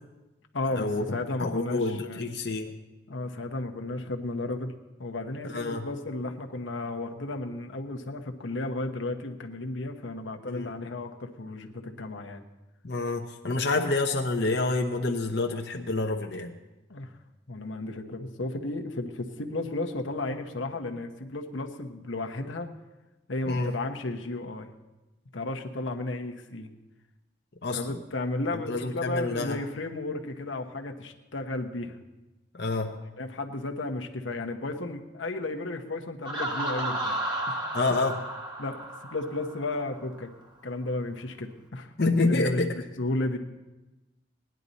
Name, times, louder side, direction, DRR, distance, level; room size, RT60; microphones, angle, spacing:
voice 1, 0.5-2.2 3.1-4.7 5.0-12.4 16.9-17.2 17.5-22.7 23.3-24.7 25.3-26.7 27.7-32.0 33.2-37.6 38.6-40.3 40.6-41.9 42.3-43.4, left 2 dB, 85° left, 4 dB, 1.1 m, -33 dB
voice 2, 1.4-2.7 5.5-5.8 10.4-10.7 12.8-16.5 23.5-23.7 27.6-27.8 28.7-29.6 32.5-33.0 37.7-38.2 42.0-42.7, left 3 dB, 60° left, 2 dB, 0.9 m, -28 dB
Laughter, 36.2-39.9, right 1 dB, 25° right, 1.4 m, -33 dB
19.0 x 10.5 x 4.1 m, 1.1 s
head